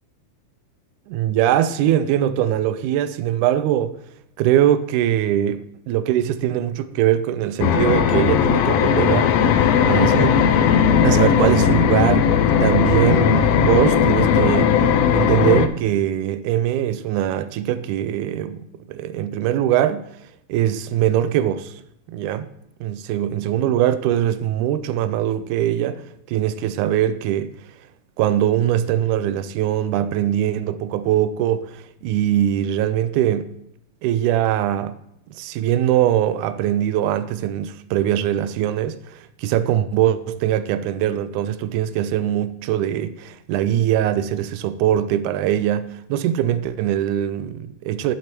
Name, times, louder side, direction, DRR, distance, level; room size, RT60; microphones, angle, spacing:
voice 1, 1.1-4.0 4.4-10.4 11.0-14.7 15.1-20.1 20.5-21.7 22.1-22.5 22.8-26.0 26.3-27.5 28.2-33.5 34.0-35.0 35.3-48.1, right 11 dB, 90° right, 2.0 m, -21 dB
sound 1, 7.6-15.7, left 8 dB, 85° left, 1.4 m, -17 dB
11.0 x 8.3 x 2.9 m
omnidirectional pair, 3.5 m